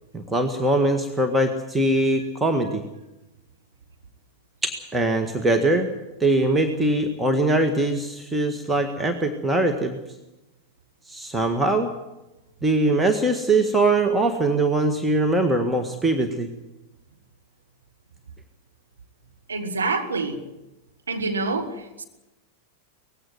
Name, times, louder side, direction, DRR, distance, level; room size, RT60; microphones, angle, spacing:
voice 1, 0.1-2.8 4.6-5.9 6.2-10.0 11.1-11.9 12.6-16.5, right 2 dB, 10° right, 1.7 m, -22 dB
voice 2, 19.5-20.5 21.1-22.0, right 3 dB, 75° right, 2.3 m, -27 dB
19.0 x 16.0 x 9.3 m
figure-of-eight pair, 90°, 0 cm